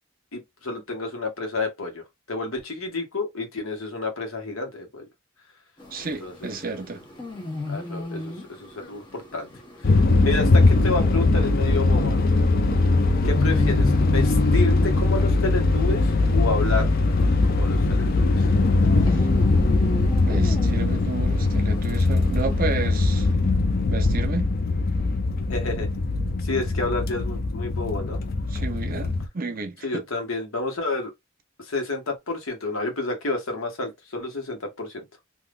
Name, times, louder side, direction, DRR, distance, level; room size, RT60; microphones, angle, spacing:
voice 1, 0.3-2.0 2.3-5.1 6.2-6.5 7.7-9.5 9.8-12.2 13.2-16.9 17.4-18.5 25.5-25.9 26.4-28.2 29.8-31.1 31.6-35.1, left 3 dB, 90° left, 1.3 m, -30 dB
sound 1, 5.8-23.3, left 3 dB, 25° left, 1.1 m, -35 dB
voice 2, 5.9-7.0 19.1-19.3 20.2-23.3 23.9-24.5 28.5-30.0, right 3 dB, 45° right, 0.7 m, -31 dB
sound 2, 9.8-29.3, left 3 dB, 45° left, 0.5 m, -21 dB
3.5 x 2.6 x 2.4 m
head